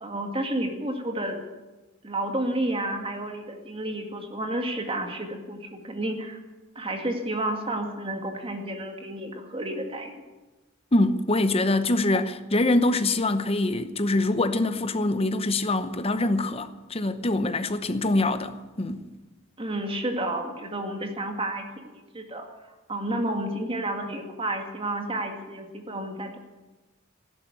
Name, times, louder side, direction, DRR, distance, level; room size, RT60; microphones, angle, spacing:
voice 1, 0.0-1.4 2.0-6.4 6.8-10.1 19.6-22.5 22.9-26.4, right 1 dB, 25° right, 2.1 m, -31 dB
voice 2, 10.9-19.0, left 2 dB, 30° left, 0.9 m, -24 dB
13.0 x 11.5 x 9.5 m
head